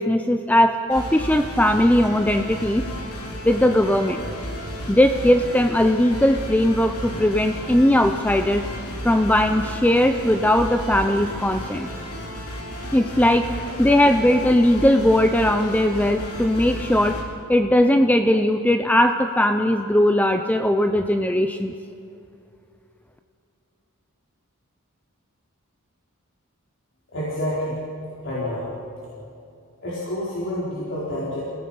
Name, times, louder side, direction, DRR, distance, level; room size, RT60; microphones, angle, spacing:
voice 1, 0.0-2.8 3.4-4.2 4.9-8.6 9.0-11.9 12.9-13.5 13.8-17.2 17.5-21.7, left 1 dB, 5° left, 7 dB, 0.5 m, -19 dB
sound 1, 0.9-17.2, equal, 85° left, 3.3 m, -33 dB
voice 2, 27.1-27.8 28.2-28.8 29.8-31.4, left 1 dB, 55° left, -8 dB, 4.2 m, -28 dB
29.0 x 17.0 x 5.6 m, 2.6 s
head